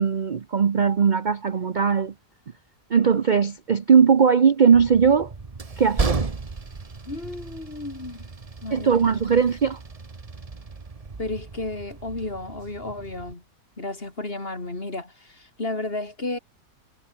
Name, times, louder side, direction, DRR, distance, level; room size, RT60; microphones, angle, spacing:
voice 1, 0.0-2.1 2.9-5.3 5.8-6.3 8.7-9.8, right 6 dB, 45° right, 0.6 m, -19 dB
Train, 4.7-13.3, right 4 dB, 25° right, 1.1 m, -34 dB
voice 2, 7.1-8.3 8.6-9.3 11.2-13.4 13.8-16.4, left 2 dB, 35° left, 3.3 m, -33 dB
omnidirectional pair, 1.7 m